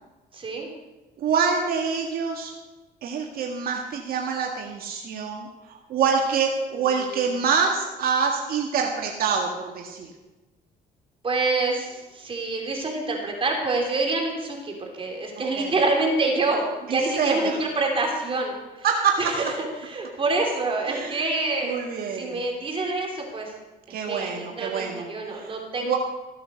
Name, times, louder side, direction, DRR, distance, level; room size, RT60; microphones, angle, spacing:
voice 1, 0.3-0.7 6.7-7.1 11.2-18.9 19.2-21.8 22.1-23.5 23.9-26.0, right 3 dB, 30° right, 1 dB, 3.1 m, -27 dB
voice 2, 1.2-2.5 3.0-10.1 15.6-15.7 16.9-17.5 18.8-19.2 20.9-21.2 21.6-22.4 23.9-25.5 25.8-26.0, right 6 dB, 60° right, 1 dB, 1.8 m, -26 dB
15.5 x 8.6 x 6.6 m, 1.1 s
cardioid pair, 110°, 17 cm